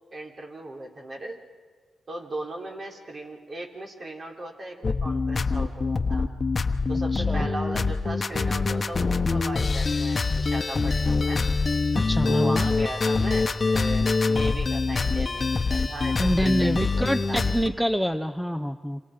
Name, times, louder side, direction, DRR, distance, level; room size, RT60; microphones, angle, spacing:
voice 1, 0.1-1.4 2.1-6.3 6.9-11.5 12.2-17.4, right 1 dB, 50° right, 1 dB, 3.9 m, -37 dB
sound 1, 4.8-17.7, left 3 dB, 45° left, 1.1 m, -25 dB
voice 2, 7.1-7.5 11.9-12.7 16.2-19.0, equal, ahead, 11 dB, 0.8 m, -26 dB
28.0 x 26.5 x 5.1 m, 1.5 s
cardioid pair, 55°, 0 cm